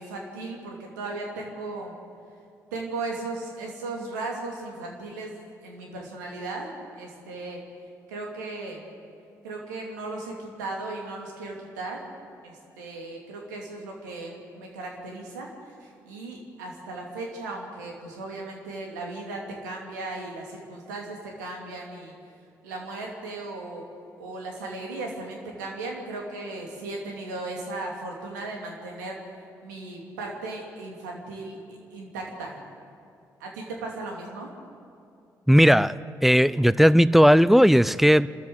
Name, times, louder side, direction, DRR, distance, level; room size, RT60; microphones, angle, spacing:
voice 1, 0.0-1.9 2.7-7.6 8.1-8.8 9.4-12.0 12.4-15.5 15.8-22.1 22.6-23.8 24.2-29.2 29.6-31.6 31.9-32.6 33.4-34.5, right 2 dB, 80° right, 2.7 m, -36 dB
voice 2, 35.5-35.9 36.2-38.3, equal, ahead, 0.5 m, -16 dB
28.0 x 13.5 x 8.0 m
figure-of-eight pair, 40°, 10 cm